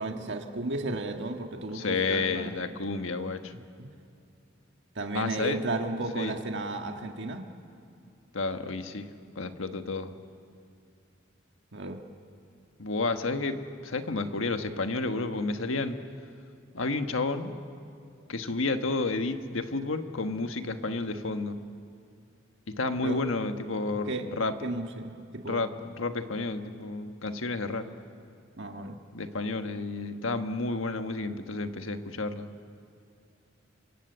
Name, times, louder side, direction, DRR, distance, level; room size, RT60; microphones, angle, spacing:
voice 1, 0.0-2.5 3.8-3.9 4.9-7.4 11.7-12.0 23.0-23.2 24.0-24.3 24.6-25.6 28.6-29.0, right 2 dB, 65° right, 4 dB, 1.7 m, -34 dB
voice 2, 1.7-3.5 5.1-5.6 6.1-6.3 8.3-9.1 9.3-10.1 12.8-16.0 16.7-17.5 18.3-21.6 22.7-24.5 25.4-27.9 29.1-32.5, left 3 dB, 90° left, 7 dB, 1.4 m, -31 dB
27.5 x 25.5 x 8.1 m, 2.4 s
head